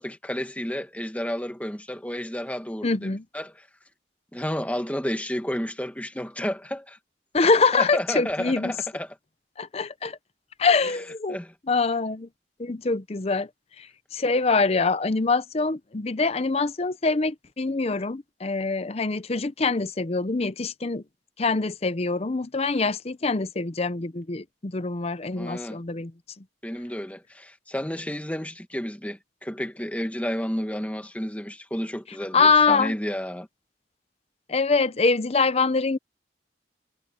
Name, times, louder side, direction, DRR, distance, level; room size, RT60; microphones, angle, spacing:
voice 1, 0.0-3.7 4.3-7.0 7.7-9.1 11.3-11.5 25.4-25.8 26.6-33.5, equal, 10° left, 1.6 m, -31 dB
voice 2, 2.8-3.2 7.3-8.7 9.6-10.2 10.6-11.4 11.7-12.3 12.6-13.5 13.8-21.0 21.4-26.1 26.4-26.5 32.3-32.9 34.5-36.0, left 4 dB, 35° left, 0.7 m, -24 dB
head